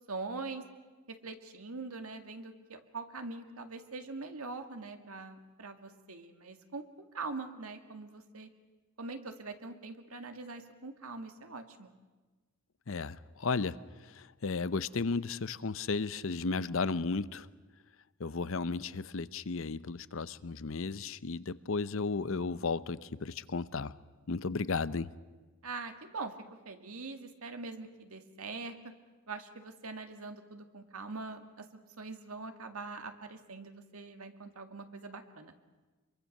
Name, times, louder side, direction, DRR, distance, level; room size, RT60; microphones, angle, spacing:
voice 1, 0.1-0.6 1.1-8.5 9.0-11.9 25.6-26.3 26.7-28.8 29.3-31.7 32.0-35.5, right 3 dB, 85° right, 7 dB, 2.0 m, -43 dB
voice 2, 12.9-13.8 14.0-17.5 18.2-24.0 24.3-25.1, left 4 dB, 65° left, 16 dB, 0.6 m, -34 dB
25.5 x 23.5 x 6.6 m, 1.3 s
head